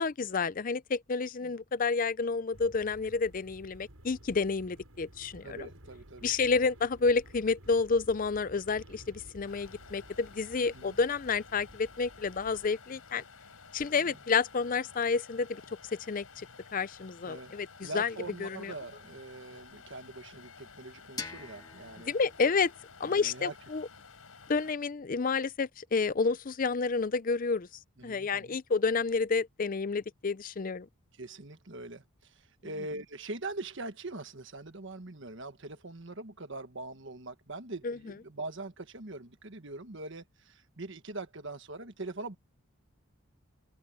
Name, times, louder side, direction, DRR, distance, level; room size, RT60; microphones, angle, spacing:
voice 1, 0.0-5.7 6.2-13.2 13.7-15.6 16.1-16.5 16.7-18.1 18.4-18.7 22.1-22.7 23.0-23.9 24.5-27.7 28.0-30.9 37.8-38.0, left 4 dB, 40° left, 0.5 m, -30 dB
sound 1, 2.5-12.7, equal, 75° right, 7.9 m, -54 dB
voice 2, 5.4-6.3 10.6-10.9 14.0-14.2 17.3-17.5 17.8-22.1 23.0-23.5 28.0-28.6 31.1-42.3, right 2 dB, 55° right, 1.5 m, -42 dB
sound 2, 9.4-24.7, left 5 dB, 85° left, 4.3 m, -53 dB
sound 3, 21.2-24.0, left 4 dB, 15° left, 1.7 m, -46 dB
open air
head